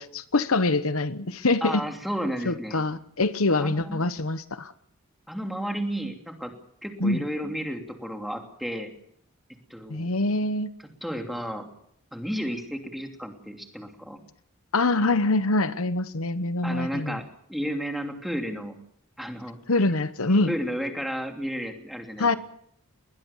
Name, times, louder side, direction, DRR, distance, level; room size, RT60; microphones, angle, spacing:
voice 1, 0.0-1.8 2.5-4.7 7.0-7.2 9.9-10.7 14.7-17.2 19.7-20.5 22.2-22.4, left 2 dB, 85° left, 13 dB, 1.1 m, -24 dB
voice 2, 1.6-2.8 3.6-4.0 5.3-6.5 6.8-8.9 9.7-10.1 11.0-11.7 12.1-14.2 16.6-17.2 17.5-18.7 19.2-19.6 20.3-22.4, equal, ahead, 3 dB, 3.0 m, -32 dB
21.5 x 20.0 x 7.3 m, 0.69 s
head